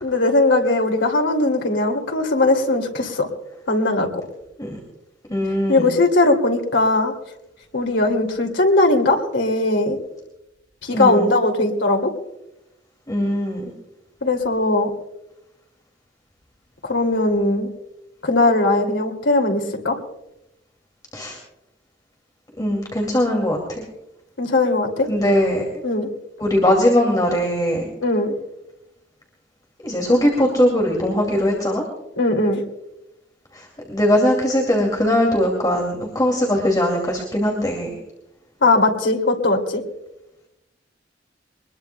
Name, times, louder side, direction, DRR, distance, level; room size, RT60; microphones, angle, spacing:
voice 1, 0.0-3.3 3.7-4.1 5.7-7.1 7.7-10.0 10.8-12.1 14.2-14.9 16.8-17.7 18.2-19.9 24.4-25.1 25.8-26.1 28.0-28.3 32.2-32.6 38.6-39.8, left 2 dB, 85° left, 3 dB, 2.6 m, -19 dB
voice 2, 5.3-5.9 10.9-11.4 13.1-13.7 21.1-21.4 22.6-23.9 25.1-25.8 26.4-27.9 29.8-31.8 33.5-38.0, left 1 dB, 20° left, 0 dB, 2.5 m, -20 dB
23.0 x 20.5 x 2.3 m, 0.90 s
head